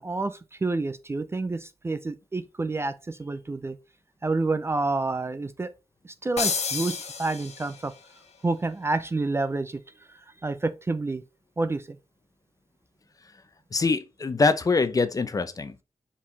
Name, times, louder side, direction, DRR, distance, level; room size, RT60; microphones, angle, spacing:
voice 1, 0.0-3.8 4.2-5.7 6.2-7.9 8.4-9.8 10.4-11.2 11.6-12.0, right 3 dB, 20° right, 0.4 m, -28 dB
sound 1, 6.4-8.0, left 5 dB, 75° left, 1.3 m, -30 dB
voice 2, 13.7-15.8, left 3 dB, 30° left, 0.7 m, -24 dB
5.5 x 4.8 x 4.0 m
wide cardioid pair, 170°, 11 cm